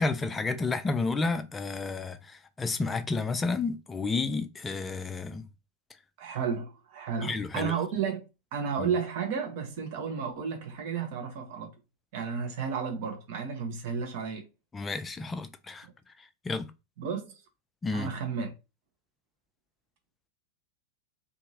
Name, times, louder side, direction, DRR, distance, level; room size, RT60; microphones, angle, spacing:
voice 1, 0.0-5.5 7.2-7.7 8.8-8.9 14.7-15.9 16.4-16.7 17.8-18.1, left 3 dB, 15° left, 0.3 m, -31 dB
voice 2, 6.2-8.2 8.5-11.7 12.1-14.4 15.8-15.9 17.0-17.3 17.9-18.5, right 6 dB, 50° right, 0.8 m, -32 dB
2.8 x 2.5 x 2.7 m
figure-of-eight pair, 90°, 0 cm